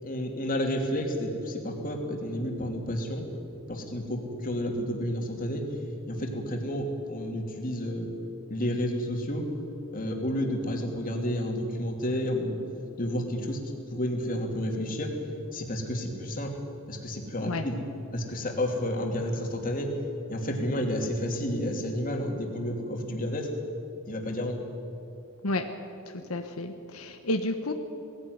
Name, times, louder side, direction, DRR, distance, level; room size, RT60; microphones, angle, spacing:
voice 1, 0.0-3.3 3.7-5.7 6.1-8.1 8.5-9.5 9.9-12.6 13.0-13.6 13.9-15.2 15.5-16.6 16.9-17.8 18.1-19.9 20.3-23.5 24.1-24.6, equal, 40° left, 2 dB, 2.9 m, -30 dB
voice 2, 26.3-27.7, left 2 dB, 85° left, 6 dB, 1.2 m, -30 dB
19.0 x 16.5 x 9.5 m, 2.8 s
head